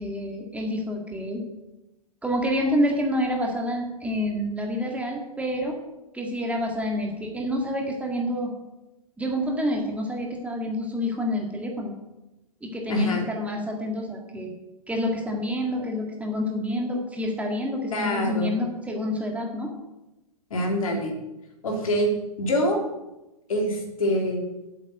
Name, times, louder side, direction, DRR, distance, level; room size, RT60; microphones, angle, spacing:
voice 1, 0.0-1.4 2.2-5.8 6.1-8.5 9.2-11.9 12.6-14.6 14.9-19.7, left 1 dB, 5° right, 1 dB, 1.9 m, -28 dB
voice 2, 12.9-13.2 17.9-18.5 20.5-21.1 21.6-22.1 22.4-22.8 23.5-24.4, equal, 60° left, 1 dB, 3.3 m, -25 dB
8.3 x 8.3 x 9.1 m, 0.99 s
figure-of-eight pair, 105°, 20 cm